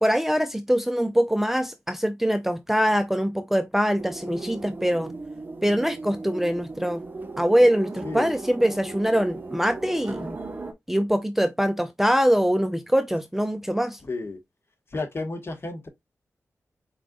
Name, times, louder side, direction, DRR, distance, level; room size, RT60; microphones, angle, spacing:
voice 1, 0.0-5.1 5.6-7.0 7.4-10.4 10.9-14.0, equal, 5° right, 0.4 m, -23 dB
sound 1, 4.0-10.7, right 3 dB, 35° right, 1.0 m, -37 dB
voice 2, 8.0-8.3 14.0-14.4 14.9-15.9, left 3 dB, 45° left, 1.4 m, -32 dB
4.5 x 3.8 x 2.3 m
cardioid pair, 70°, 6 cm